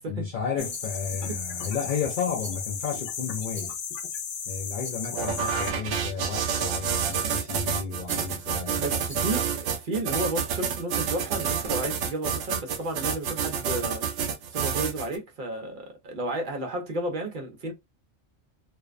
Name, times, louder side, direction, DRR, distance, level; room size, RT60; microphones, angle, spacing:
voice 1, 0.1-3.7 4.5-9.2, left 6 dB, 60° left, 0.5 m, -32 dB
sound 1, 0.6-5.7, left 6 dB, 80° left, 0.9 m, -35 dB
Rattle, 0.7-1.2 1.6-2.0 2.4-2.9 3.5-4.1 4.8-5.1 5.9-6.3 7.1-7.5 8.0-8.5 9.0-9.5, right 1 dB, 15° left, 0.7 m, -47 dB
sound 2, 5.1-15.2, right 7 dB, 85° right, 0.9 m, -29 dB
voice 2, 8.8-9.4 9.7-14.0 14.5-17.7, right 2 dB, 50° right, 0.7 m, -32 dB
2.5 x 2.1 x 2.3 m
omnidirectional pair, 1.3 m